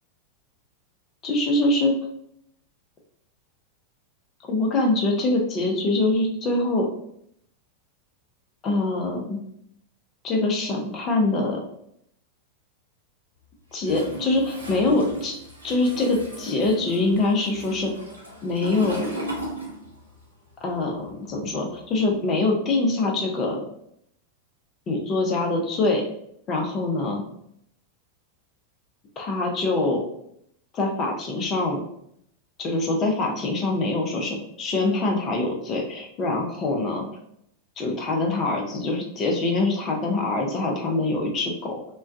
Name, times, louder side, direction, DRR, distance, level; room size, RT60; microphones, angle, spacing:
voice 1, 1.2-2.0 4.5-6.9 8.6-9.4 10.2-11.6 13.7-15.4 15.6-17.9 18.4-19.2 20.6-23.7 24.9-26.0 26.5-27.2 29.2-30.1 30.7-31.8 32.6-37.1 37.8-41.8, left 2 dB, 30° left, 0 dB, 0.6 m, -24 dB
Toilet flush, 13.8-20.2 20.5-22.1, right 1 dB, 85° right, 0.6 m, -37 dB
2.3 x 2.2 x 2.4 m, 0.71 s
figure-of-eight pair, 90°, 0 cm